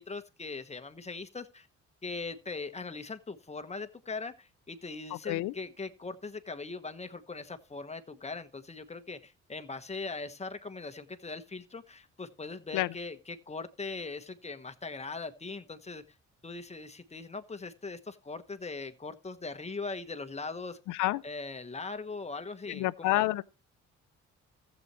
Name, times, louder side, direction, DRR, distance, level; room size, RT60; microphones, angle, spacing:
voice 1, 0.0-1.7 2.0-16.0 16.4-20.8 21.2-23.3, left 3 dB, 20° left, 1.2 m, -40 dB
voice 2, 5.1-5.5 12.7-12.9 20.9-21.2 22.7-23.4, left 17 dB, 90° left, 0.5 m, -29 dB
15.0 x 8.1 x 3.1 m
cardioid pair, 90°, 30 cm